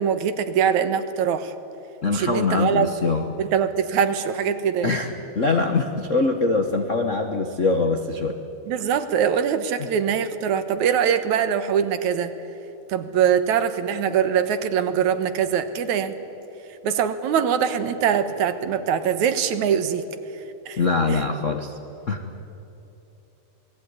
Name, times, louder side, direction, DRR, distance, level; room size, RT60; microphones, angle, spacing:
voice 1, 0.0-1.5 2.1-2.9 3.4-5.0 8.7-12.3 12.9-16.2 16.8-20.1 20.7-20.8 21.1-21.2, right 8 dB, 75° right, 10 dB, 2.6 m, -22 dB
voice 2, 2.0-3.3 4.8-8.4 20.8-21.7 22.1-22.2, left 3 dB, 55° left, 5 dB, 0.8 m, -23 dB
27.5 x 20.0 x 9.7 m, 3.0 s
omnidirectional pair, 3.4 m